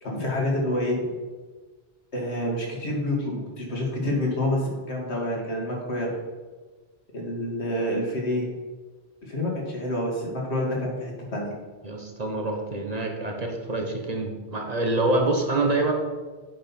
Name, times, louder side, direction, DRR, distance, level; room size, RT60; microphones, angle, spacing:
voice 1, 0.0-1.0 2.1-6.1 7.1-8.5 9.2-11.5, left 1 dB, 80° left, -1 dB, 2.0 m, -28 dB
voice 2, 11.8-15.9, right 2 dB, 40° right, 2 dB, 1.0 m, -26 dB
8.8 x 5.4 x 4.2 m, 1.4 s
omnidirectional pair, 1.1 m